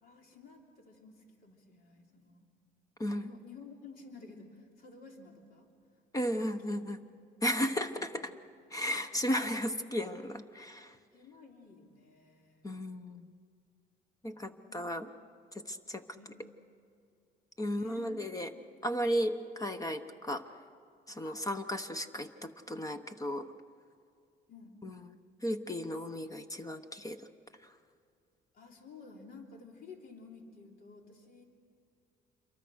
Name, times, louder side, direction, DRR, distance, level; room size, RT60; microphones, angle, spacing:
voice 1, 0.0-2.5 3.1-5.7 6.3-6.8 7.9-8.1 9.1-9.4 11.1-12.8 14.3-15.1 16.2-16.3 17.7-18.2 24.5-24.8 28.5-31.4, left 4 dB, 60° left, 2 dB, 3.3 m, -53 dB
voice 2, 6.1-7.0 7.4-8.3 8.7-10.9 12.6-13.3 14.2-15.1 15.5-16.0 17.6-18.5 18.8-20.4 21.1-23.5 24.8-25.0 25.4-27.2, equal, 20° left, 9 dB, 1.0 m, -34 dB
27.5 x 23.5 x 6.4 m, 2.4 s
cardioid pair, 110°, 17 cm